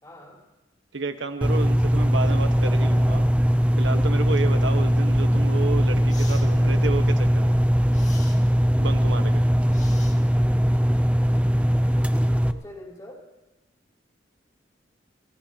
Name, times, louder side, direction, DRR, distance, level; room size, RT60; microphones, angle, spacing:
voice 1, 0.0-0.4 11.8-13.2, left 1 dB, 20° left, -1 dB, 3.1 m, -46 dB
voice 2, 0.9-3.3 3.8-7.5 8.8-9.4, right 3 dB, 80° right, 6 dB, 1.3 m, -31 dB
sound 1, 1.4-12.5, equal, 5° right, 0.4 m, -20 dB
sound 2, 6.1-6.5 7.9-8.4 9.7-10.5, left 5 dB, 40° left, 1.8 m, -44 dB
28.5 x 17.5 x 2.9 m, 1.0 s
head